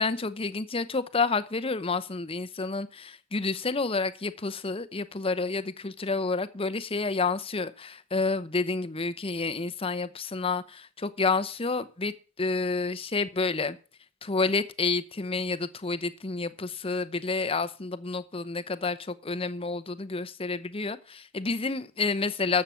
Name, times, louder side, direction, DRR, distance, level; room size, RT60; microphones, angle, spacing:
voice 1, 0.0-13.8 14.2-22.6, left 4 dB, 25° left, 13 dB, 0.8 m, -29 dB
13.5 x 7.4 x 5.7 m, 0.37 s
head